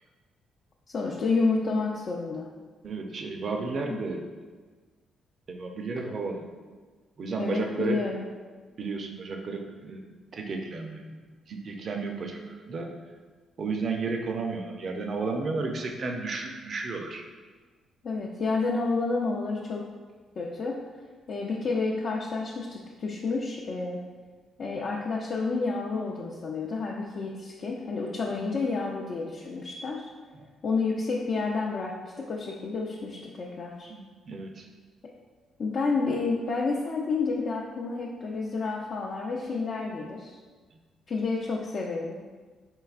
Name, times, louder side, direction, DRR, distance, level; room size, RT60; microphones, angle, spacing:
voice 1, 0.9-2.5 3.9-4.0 7.4-8.2 18.0-19.8 20.4-20.8 21.3-24.0 24.6-30.1 30.6-33.9 35.6-40.3 41.1-42.3, left 3 dB, 50° left, -3 dB, 0.4 m, -30 dB
voice 2, 2.8-4.3 5.5-6.5 7.2-8.0 8.8-11.0 11.5-12.9 13.6-17.2 28.4-28.5 33.9-34.7 40.7-40.8, right 3 dB, 50° right, 3 dB, 0.5 m, -33 dB
4.6 x 3.2 x 2.4 m, 1.4 s
cardioid pair, 90°, 0 cm